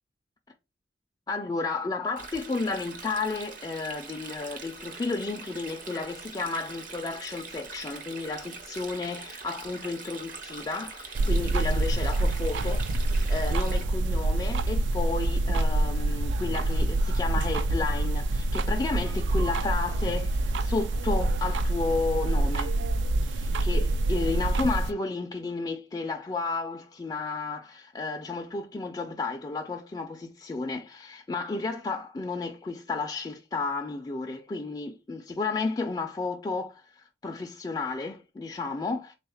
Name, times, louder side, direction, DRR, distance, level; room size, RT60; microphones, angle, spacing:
voice 1, 1.3-22.8 23.2-39.1, left 3 dB, 20° left, 0.3 m, -32 dB
Stream, 2.2-13.8, right 4 dB, 50° right, 0.7 m, -43 dB
sound 1, 11.2-24.9, right 2 dB, 85° right, 0.4 m, -26 dB
3.5 x 2.3 x 4.2 m
head